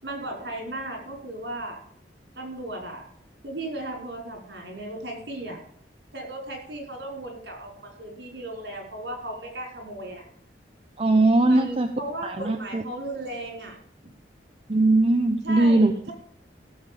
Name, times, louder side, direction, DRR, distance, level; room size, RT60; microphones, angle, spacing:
voice 1, 0.0-1.8 2.3-3.1 3.4-5.6 6.1-10.2 11.4-13.8 15.4-16.1, right 1 dB, 70° right, 2 dB, 5.0 m, -36 dB
voice 2, 11.0-11.9 12.2-12.8 14.7-15.9, right 2 dB, 35° right, 5 dB, 0.9 m, -20 dB
16.5 x 7.8 x 5.2 m, 0.63 s
head